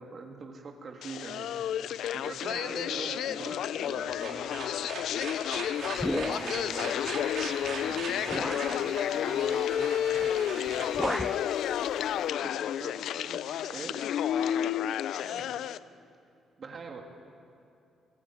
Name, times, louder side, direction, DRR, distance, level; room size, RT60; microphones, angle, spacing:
voice 1, 0.0-1.5 2.1-4.8 6.1-7.0 7.6-9.8 11.9-12.0 12.8-13.4 13.7-14.0 16.6-17.0, right 4 dB, 45° right, 2 dB, 3.3 m, -43 dB
sound 1, 1.0-15.8, left 10 dB, 75° left, 0.6 m, -31 dB
sound 2, 3.9-11.9, right 4 dB, 65° right, 5.6 m, -40 dB
voice 2, 5.4-8.0 12.0-12.7 15.1-15.6, left 3 dB, 55° left, 3 dB, 6.3 m, -51 dB
sound 3, 6.0-6.8 7.6-7.8 8.3-8.8 10.2-10.4 10.7-11.5, equal, 5° left, 0.5 m, -33 dB
25.0 x 18.0 x 9.3 m, 2.6 s
cardioid pair, 90°, 0 cm